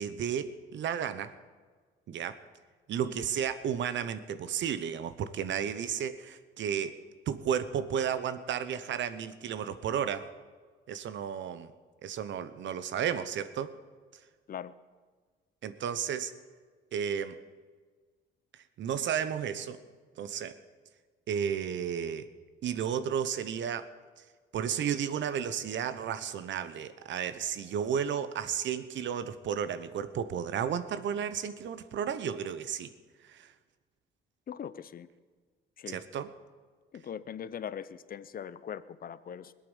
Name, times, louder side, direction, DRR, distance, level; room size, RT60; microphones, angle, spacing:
voice 1, 0.0-1.3 2.1-2.4 2.9-6.9 7.3-10.3 10.9-11.7 12.0-13.7 15.6-16.3 16.9-17.4 18.8-19.8 20.2-20.6 21.3-22.3 22.6-23.9 24.5-32.9 33.3-33.5 35.9-36.3, right 8 dB, 70° right, 13 dB, 1.0 m, -33 dB
voice 2, 34.5-35.1 35.8-36.0 36.9-39.5, left 8 dB, 45° left, 16 dB, 0.7 m, -41 dB
20.5 x 8.8 x 7.2 m, 1.5 s
cardioid pair, 90°, 20 cm